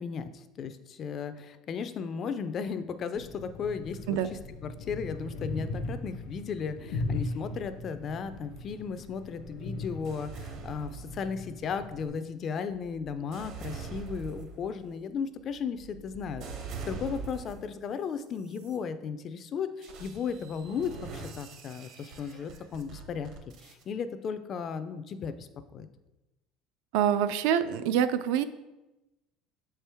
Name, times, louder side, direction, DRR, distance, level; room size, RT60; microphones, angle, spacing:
voice 1, 0.0-16.4 16.9-23.3 23.6-25.9, left 6 dB, 30° left, 11 dB, 0.3 m, -35 dB
sound 1, 3.1-12.1, left 2 dB, 80° left, 0.8 m, -38 dB
sound 2, 10.0-11.6 12.3-17.8 18.4-18.8 19.8-23.8, right 5 dB, 50° right, 0.8 m, -43 dB
voice 2, 26.9-28.4, right 9 dB, 75° right, 12 dB, 0.4 m, -25 dB
7.0 x 4.4 x 3.4 m, 1.0 s
cardioid pair, 175°, 0 cm